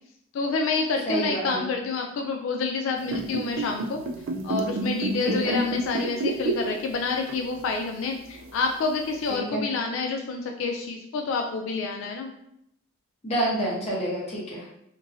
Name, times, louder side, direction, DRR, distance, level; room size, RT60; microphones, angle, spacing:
voice 1, 0.3-4.0 4.4-12.3, left 4 dB, 80° left, 3 dB, 0.3 m, -28 dB
voice 2, 1.1-1.6 5.2-5.6 9.3-9.6 13.2-14.6, right 1 dB, 30° left, -6 dB, 1.0 m, -28 dB
sound 1, 3.0-7.0 7.3-7.5 8.3-8.4, right 2 dB, 80° right, 0.4 m, -28 dB
2.9 x 2.6 x 2.6 m, 0.77 s
head